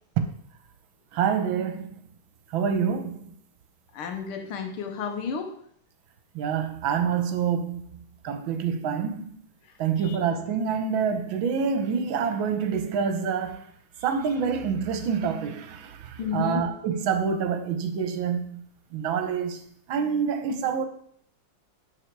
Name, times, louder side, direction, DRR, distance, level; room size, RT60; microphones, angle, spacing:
voice 1, 1.1-1.9 2.5-3.3 6.3-7.8 8.2-9.4 9.8-13.6 14.0-18.6 18.9-19.6 19.9-20.8, right 6 dB, 70° right, 1.6 m, -27 dB
voice 2, 3.9-5.5 10.0-10.2 16.2-16.6, left 6 dB, 85° left, 1.9 m, -31 dB
11.0 x 4.3 x 4.5 m
omnidirectional pair, 2.3 m